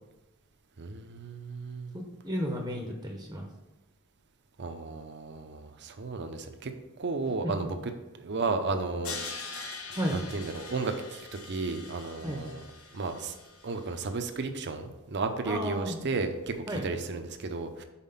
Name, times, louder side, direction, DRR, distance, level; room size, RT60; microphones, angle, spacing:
voice 1, 0.8-2.0 4.6-6.7 7.0-9.8 10.1-12.6 12.9-13.3 13.6-17.8, right 3 dB, 55° right, 7 dB, 0.7 m, -34 dB
voice 2, 1.9-3.5 7.4-7.5 9.9-10.2 12.2-12.4 15.5-16.0 16.7-16.8, equal, 15° right, 1 dB, 0.8 m, -33 dB
Crash cymbal, 9.0-14.1, left 4 dB, 85° left, 1.0 m, -43 dB
5.7 x 4.1 x 5.6 m, 1.0 s
head